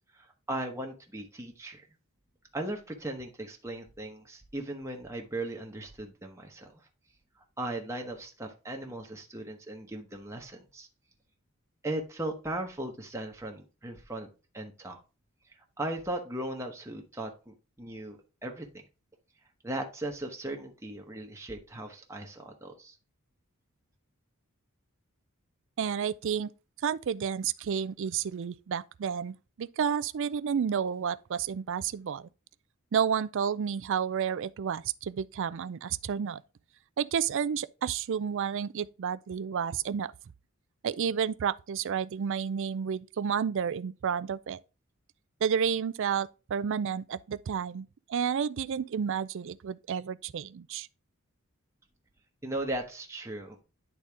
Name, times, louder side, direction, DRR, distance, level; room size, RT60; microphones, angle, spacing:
voice 1, 0.1-1.8 2.5-6.8 7.6-10.9 11.8-14.3 14.5-15.0 15.8-18.8 19.6-23.0 52.4-53.6, right 1 dB, 15° right, 1.0 m, -37 dB
voice 2, 25.8-26.5 26.8-32.3 32.9-36.4 37.0-40.1 40.8-44.6 45.4-50.9, right 7 dB, 60° right, 0.4 m, -31 dB
9.9 x 4.0 x 3.5 m
head